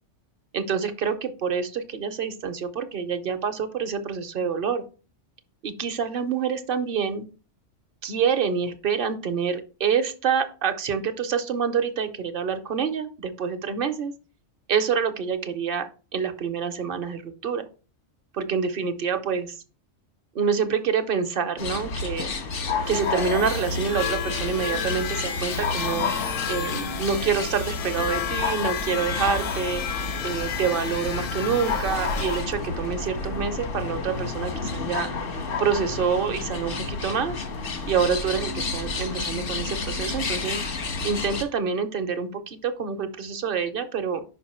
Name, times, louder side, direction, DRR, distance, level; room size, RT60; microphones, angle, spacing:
voice 1, 0.5-4.9 5.6-7.3 8.0-14.1 14.7-17.7 18.3-19.6 20.3-22.3 22.9-26.1 26.5-29.8 30.2-35.1 35.6-37.4 37.9-40.6 41.0-44.2, right 6 dB, 55° right, 10 dB, 0.8 m, -27 dB
sound 1, 21.6-41.4, left 4 dB, 90° left, 1.5 m, -30 dB
sound 2, 22.8-32.4, left 8 dB, 70° left, 0.3 m, -32 dB
5.4 x 5.2 x 4.2 m, 0.35 s
omnidirectional pair, 1.3 m